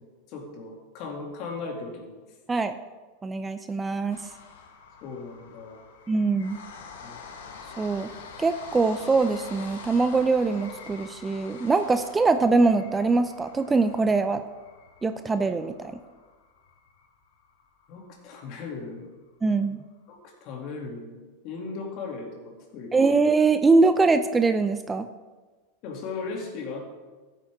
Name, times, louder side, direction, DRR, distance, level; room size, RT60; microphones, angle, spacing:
voice 1, 0.3-2.2 5.0-5.8 7.0-7.2 17.9-19.0 20.1-21.2 21.4-23.2 25.8-26.9, left 4 dB, 50° left, 1 dB, 2.5 m, -37 dB
voice 2, 3.2-4.2 6.1-6.6 7.8-8.1 8.4-14.4 15.0-15.9 19.4-19.8 22.9-25.1, right 3 dB, 15° right, 10 dB, 0.5 m, -23 dB
sound 1, 4.1-18.2 18.6-18.7 19.0-19.1, left 5 dB, 70° left, 1.5 m, -46 dB
15.0 x 8.4 x 3.6 m, 1.3 s
hypercardioid pair, 95°, 0 cm